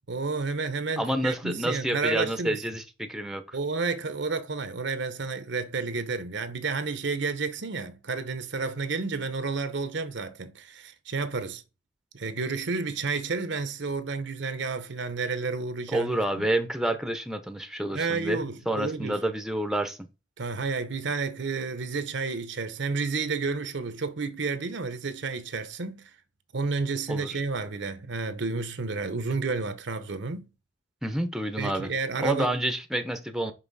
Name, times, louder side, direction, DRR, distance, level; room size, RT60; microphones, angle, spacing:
voice 1, 0.1-2.6 3.5-11.6 12.1-16.1 16.3-16.5 17.9-19.2 20.4-26.1 26.5-30.5 31.6-32.6, right 4 dB, 65° right, 0.9 m, -31 dB
voice 2, 1.0-3.6 15.9-20.0 27.1-27.4 31.0-31.9 32.2-33.5, right 1 dB, 5° right, 0.7 m, -29 dB
5.5 x 5.5 x 4.1 m
head